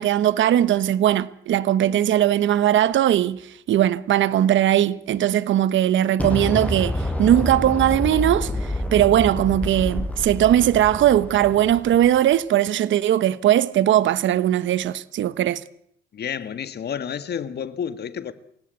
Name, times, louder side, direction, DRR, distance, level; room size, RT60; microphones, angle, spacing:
voice 1, 0.0-3.4 3.7-15.6, right 12 dB, 70° right, 1.1 m, -19 dB
Explosion, 6.2-12.2, left 1 dB, 5° left, 5.9 m, -28 dB
voice 2, 16.1-18.3, left 8 dB, 55° left, 1.7 m, -30 dB
28.0 x 17.0 x 8.2 m
cardioid pair, 90°, 20 cm